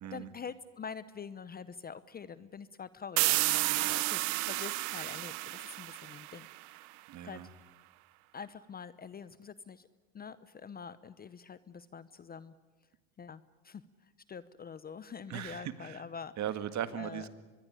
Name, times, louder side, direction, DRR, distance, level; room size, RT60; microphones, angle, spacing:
voice 1, 0.0-6.5 7.2-7.4 8.3-9.9 10.1-12.5 13.2-13.8 14.3-16.3 17.0-17.3, left 6 dB, 20° left, 15 dB, 0.8 m, -45 dB
sound 1, 3.2-6.8, right 23 dB, 75° right, 1.0 m, -31 dB
voice 2, 7.1-7.5 15.3-16.0 16.4-17.3, right 10 dB, 40° right, 11 dB, 1.9 m, -38 dB
24.0 x 21.5 x 9.9 m, 1.3 s
supercardioid pair, 115°, 43 cm